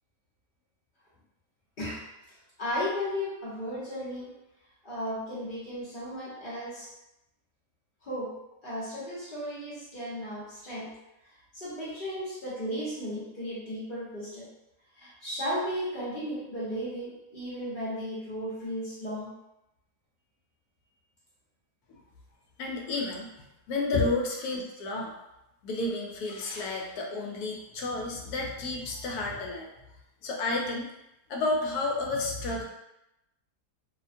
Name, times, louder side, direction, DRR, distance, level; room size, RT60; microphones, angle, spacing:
voice 1, 1.8-4.3 4.8-6.9 8.0-11.0 11.5-14.5 15.0-19.3 23.9-24.0, left 1 dB, 40° left, -9 dB, 0.8 m, -35 dB
voice 2, 22.6-23.3 23.7-25.1 25.6-29.7 30.2-30.9 31.3-32.6, left 2 dB, 75° left, 0 dB, 1.0 m, -31 dB
2.8 x 2.1 x 2.5 m, 0.89 s
omnidirectional pair, 1.8 m